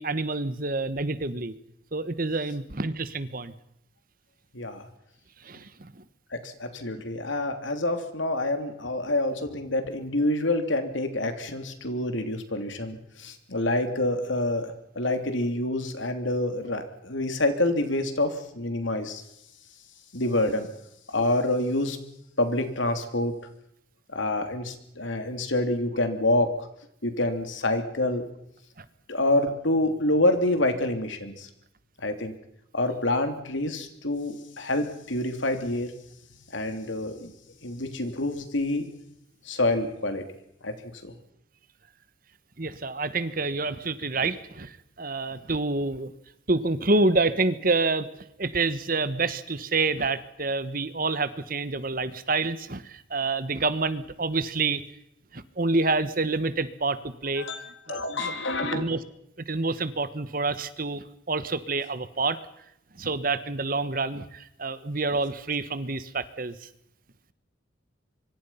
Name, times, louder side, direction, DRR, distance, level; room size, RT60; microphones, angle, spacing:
voice 1, 0.0-1.5 1.9-3.5 5.4-6.0 28.8-28.9 42.6-46.1 46.5-48.1 48.4-54.8 55.3-57.5 57.9-58.3 58.7-59.0 59.4-62.4 63.0-66.7, right 3 dB, 45° right, 14 dB, 1.3 m, -28 dB
voice 2, 4.5-4.9 6.3-19.2 20.1-20.7 21.1-22.0 22.4-23.3 24.1-26.7 27.0-28.3 29.1-31.5 32.0-32.3 32.7-35.9 36.5-37.3 37.6-38.9 39.4-40.2 40.6-40.7 41.0-41.1 57.4-58.8, left 1 dB, 75° left, 7 dB, 3.2 m, -27 dB
25.0 x 24.5 x 5.8 m, 0.77 s
head